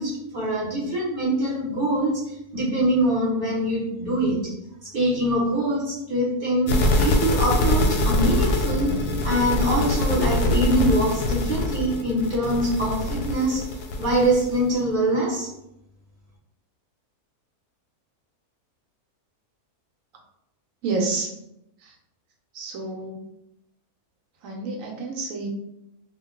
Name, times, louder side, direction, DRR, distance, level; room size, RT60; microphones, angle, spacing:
voice 1, 0.0-4.5 4.8-13.7 14.0-15.5, right 1 dB, 45° right, -6 dB, 0.9 m, -24 dB
sound 1, 6.7-14.7, left 1 dB, 90° left, 1.1 m, -24 dB
voice 2, 20.8-21.3 21.8-21.9 22.5-23.2 24.4-25.5, right 3 dB, 70° right, 1 dB, 1.0 m, -29 dB
2.5 x 2.2 x 3.7 m, 0.83 s
omnidirectional pair, 1.6 m